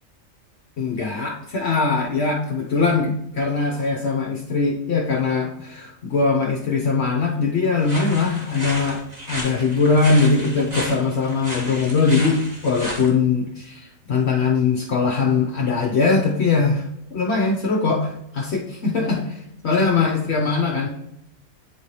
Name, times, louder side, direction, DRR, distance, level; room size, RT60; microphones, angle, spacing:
voice 1, 0.8-9.0 9.3-13.8 14.1-16.8 17.1-20.9, left 4 dB, 60° left, 0 dB, 1.0 m, -21 dB
sound 1, 7.8-13.1, equal, 30° right, 1.7 m, -33 dB
9.1 x 4.3 x 3.1 m, 0.81 s
omnidirectional pair, 1.4 m